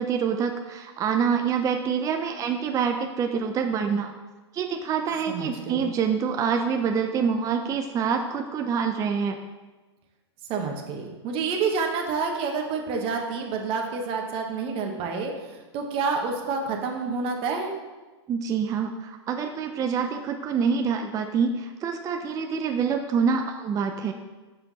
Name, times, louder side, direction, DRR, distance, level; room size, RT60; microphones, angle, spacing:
voice 1, 0.0-4.1 4.5-9.4 18.3-24.1, right 6 dB, 25° right, 4 dB, 0.5 m, -26 dB
voice 2, 5.3-5.9 10.5-17.7, right 5 dB, 40° right, 2 dB, 1.2 m, -28 dB
6.0 x 5.7 x 4.1 m, 1.2 s
hypercardioid pair, 110°, 15 cm